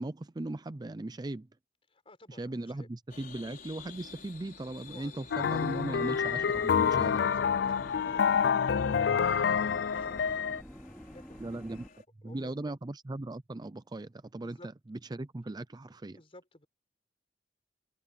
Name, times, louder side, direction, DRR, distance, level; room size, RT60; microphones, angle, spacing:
voice 1, 0.0-1.5 2.3-7.2 11.4-11.8 12.2-14.6 14.9-16.2, right 2 dB, 25° right, 0.5 m, -38 dB
voice 2, 1.9-2.9 4.9-6.1 6.5-7.7 8.0-10.4 11.0-11.7 12.2-12.7 14.4-14.7 15.8-16.7, left 1 dB, 35° left, 4.3 m, -56 dB
sound 1, 3.1-12.0, left 5 dB, 50° left, 5.1 m, -53 dB
sound 2, 5.3-10.6, left 7 dB, 65° left, 0.4 m, -27 dB
sound 3, 5.5-11.9, equal, 5° left, 2.7 m, -48 dB
head